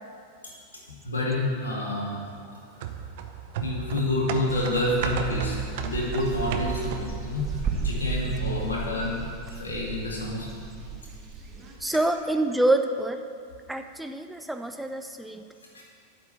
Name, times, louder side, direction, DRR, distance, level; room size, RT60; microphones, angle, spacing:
voice 1, 1.0-2.2 3.6-7.4 7.8-9.2 9.5-10.5 15.7-15.8, left 1 dB, 75° left, -3 dB, 2.2 m, -28 dB
sound 1, 2.8-7.3 7.6-7.7, right 8 dB, 50° right, 0.7 m, -34 dB
sound 2, 4.5-11.8, right 4 dB, 25° right, 1.5 m, -34 dB
voice 2, 11.8-13.2 13.7-15.4, right 1 dB, 5° right, 6 dB, 0.4 m, -26 dB
8.3 x 6.1 x 8.2 m, 2.3 s
figure-of-eight pair, 90°, 0 cm